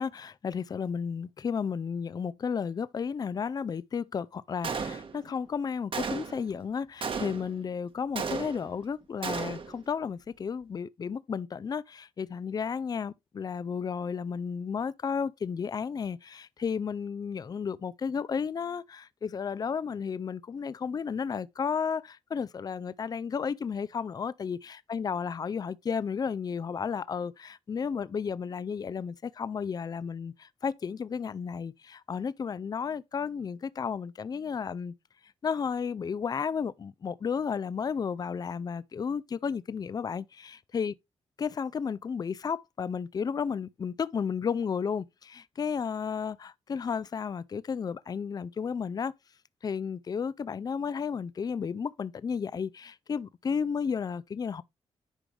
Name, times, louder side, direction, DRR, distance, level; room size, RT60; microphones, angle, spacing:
voice 1, 0.0-34.9 35.4-40.9 41.4-49.1 49.6-54.6, left 6 dB, 35° left, 0.4 m, -33 dB
Gunshot gunfire, 4.6-5.4 5.9-6.5 7.0-7.6 8.2-8.8 9.2-9.8, right 5 dB, 50° right, 1.3 m, -34 dB
10.0 x 5.0 x 3.2 m
cardioid pair, 100°, 11 cm